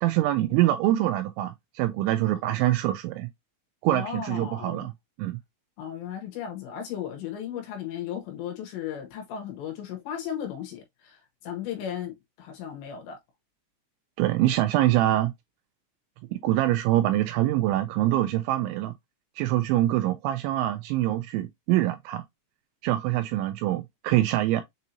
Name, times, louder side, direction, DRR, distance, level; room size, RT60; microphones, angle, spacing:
voice 1, 0.0-3.3 3.8-4.9 5.2-5.4 14.2-15.3 16.3-18.9 19.4-22.2 22.8-24.6, right 14 dB, 85° right, 2.7 m, -24 dB
voice 2, 3.9-4.9 5.8-13.2, left 9 dB, 75° left, 3.0 m, -36 dB
7.3 x 2.7 x 2.7 m
omnidirectional pair, 5.7 m